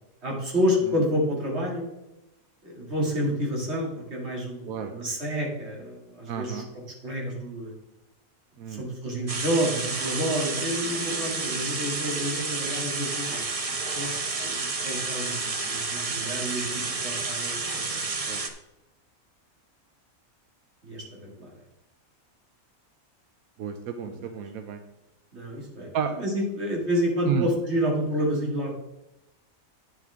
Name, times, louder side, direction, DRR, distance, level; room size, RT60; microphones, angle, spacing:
voice 1, 0.2-1.9 2.6-6.6 7.0-7.7 8.7-13.5 13.9-14.1 14.4-16.6 17.0-17.9 20.8-21.0 21.4-21.5 24.0-24.2 25.3-28.7, equal, 50° right, -2 dB, 2.9 m, -29 dB
voice 2, 6.3-6.7 8.6-8.9 18.3-18.5 23.6-24.8 25.9-26.1 27.2-27.5, right 7 dB, 90° right, 7 dB, 1.2 m, -31 dB
sound 1, 9.3-18.5, right 3 dB, 30° right, 0.8 m, -30 dB
10.0 x 7.6 x 3.6 m, 0.92 s
omnidirectional pair, 1.5 m